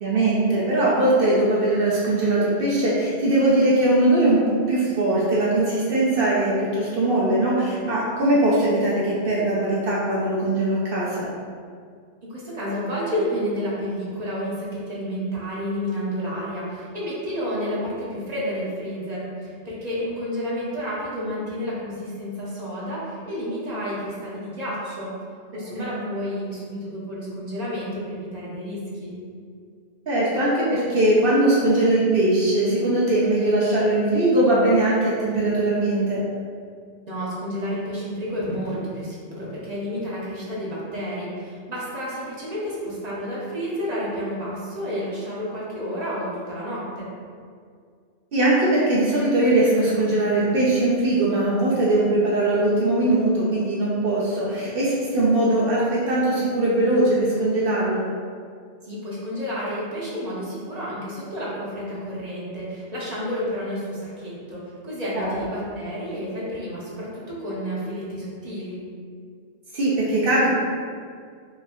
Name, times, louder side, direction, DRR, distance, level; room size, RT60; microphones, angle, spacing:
voice 1, 0.0-11.3 25.7-25.9 30.1-36.2 48.3-58.1 65.1-65.4 69.7-70.5, right 1 dB, 55° right, -6 dB, 0.8 m, -20 dB
voice 2, 12.3-25.1 25.5-29.2 37.1-47.1 58.8-68.8, equal, 40° right, -7 dB, 1.0 m, -30 dB
4.7 x 2.8 x 2.6 m, 2.1 s
omnidirectional pair, 1.2 m